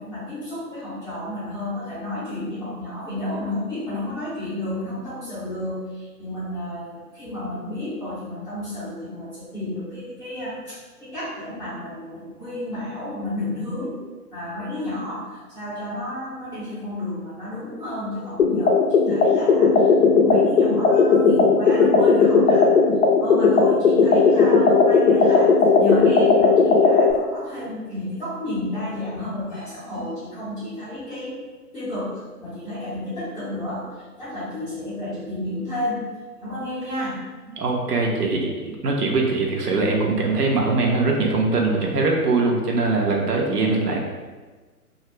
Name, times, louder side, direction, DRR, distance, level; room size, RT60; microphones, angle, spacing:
voice 1, 0.0-14.0 14.3-22.8 23.2-31.4 31.7-36.1 36.4-37.2, left 1 dB, 10° left, -16 dB, 0.6 m, -31 dB
sound 1, 18.4-27.1, left 4 dB, 60° left, 0.5 m, -16 dB
voice 2, 37.6-44.0, right 3 dB, 75° right, 0 dB, 0.7 m, -22 dB
2.3 x 2.0 x 3.1 m, 1.3 s
hypercardioid pair, 135°, 47 cm